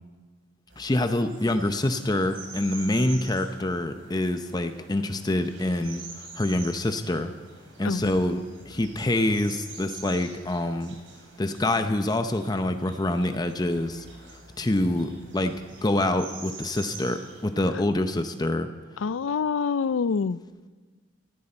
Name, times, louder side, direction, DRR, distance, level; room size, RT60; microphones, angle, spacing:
sound 1, 0.7-17.5, right 4 dB, 75° right, 3.9 m, -46 dB
voice 1, 0.8-7.3 7.8-10.9 11.4-18.7, left 1 dB, 20° left, 8 dB, 0.7 m, -26 dB
voice 2, 19.0-20.4, left 5 dB, 75° left, 18 dB, 0.4 m, -26 dB
18.5 x 15.0 x 4.4 m, 1.4 s
head